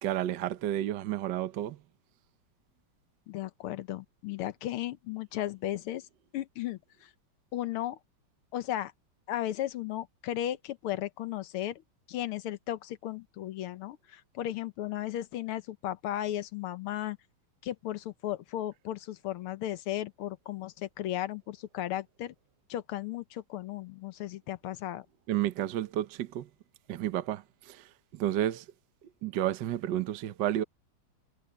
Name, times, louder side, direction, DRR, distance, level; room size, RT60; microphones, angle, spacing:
voice 1, 0.0-1.8 25.3-26.5 26.9-28.7 29.2-30.6, right 12 dB, 65° right, 1.4 m, -31 dB
voice 2, 3.3-6.1 6.3-7.1 7.5-8.0 8.5-8.9 9.3-11.8 12.1-17.2 17.6-22.3 22.7-25.1, left 13 dB, 80° left, 1.8 m, -35 dB
omnidirectional pair, 2.4 m